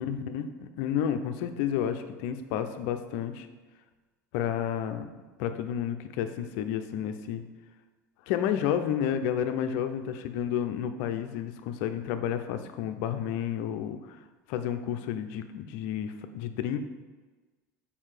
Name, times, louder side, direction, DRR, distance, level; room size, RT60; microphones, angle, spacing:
voice 1, 0.0-3.5 4.3-5.1 5.4-7.4 8.3-14.2 14.5-16.8, left 9 dB, 65° left, 8 dB, 0.7 m, -31 dB
7.3 x 5.2 x 5.0 m, 1.3 s
hypercardioid pair, 80°, 9 cm